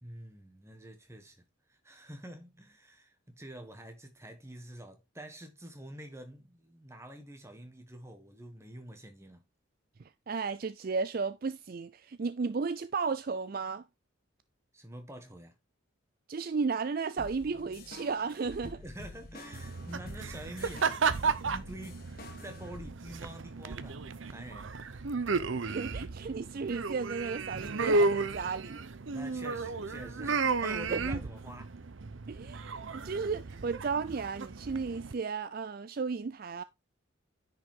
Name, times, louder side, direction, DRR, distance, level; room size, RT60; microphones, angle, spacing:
voice 1, 0.0-9.4 14.7-15.5 18.7-22.1 22.4-25.0 29.1-31.7, right 1 dB, 15° right, 1.5 m, -47 dB
voice 2, 10.0-13.8 16.3-18.8 25.6-28.8 30.9-31.0 32.3-36.6, right 4 dB, 45° right, 0.4 m, -34 dB
sound 1, 17.2-22.9, left 2 dB, 45° left, 1.4 m, -48 dB
sound 2, 19.5-35.1, right 4 dB, 70° right, 0.7 m, -33 dB
9.7 x 5.3 x 3.7 m
head